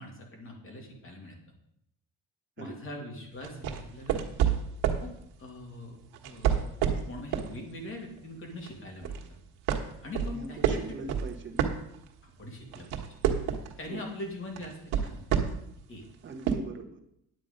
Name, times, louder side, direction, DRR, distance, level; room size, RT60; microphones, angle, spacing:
voice 1, 0.0-1.4 2.6-4.2 5.0-5.1 5.4-6.7 7.1-9.4 10.0-10.8 12.2-13.0 13.8-15.3 15.9-16.0, left 1 dB, 35° left, 1 dB, 2.5 m, -42 dB
sound 1, 3.4-5.1 6.1-7.5 8.0-8.2 8.6-9.3 9.7-12.3 12.6-13.8 14.6-15.7 16.4-16.5, right 8 dB, 85° right, 1.4 m, -28 dB
voice 2, 10.2-11.6 13.9-14.0 16.2-17.0, right 3 dB, 30° right, 4 dB, 1.2 m, -41 dB
9.5 x 8.5 x 5.2 m, 0.77 s
cardioid pair, 165°, 37 cm